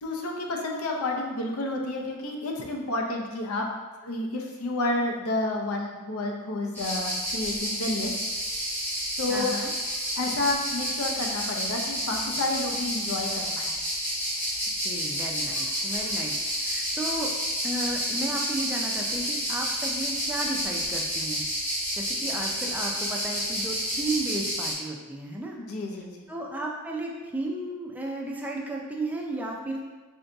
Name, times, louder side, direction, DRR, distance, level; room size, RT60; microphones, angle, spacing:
voice 1, 0.0-3.7 4.0-8.2 9.2-9.6 10.2-13.7 25.6-26.3, left 2 dB, 70° left, 1 dB, 0.6 m, -30 dB
sound 1, 6.7-24.7, equal, 10° left, 1.0 m, -30 dB
voice 2, 9.3-9.7 14.8-17.3 17.6-21.4 22.0-25.6 26.3-29.8, right 1 dB, 5° right, -1 dB, 0.4 m, -34 dB
3.8 x 2.7 x 3.4 m, 1.3 s
head